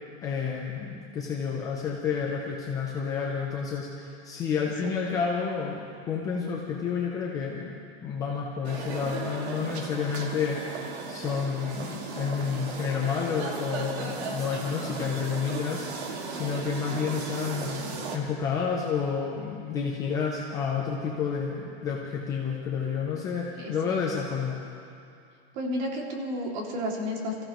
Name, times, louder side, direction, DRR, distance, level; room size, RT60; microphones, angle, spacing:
voice 1, 0.2-24.6, left 6 dB, 10° left, -2 dB, 0.4 m, -30 dB
sound 1, 8.6-18.2, right 4 dB, 85° right, 2.0 m, -36 dB
voice 2, 23.6-23.9 25.5-27.4, left 1 dB, 45° right, 0 dB, 2.4 m, -32 dB
26.0 x 15.0 x 3.0 m, 2.5 s
supercardioid pair, 175°, 32 cm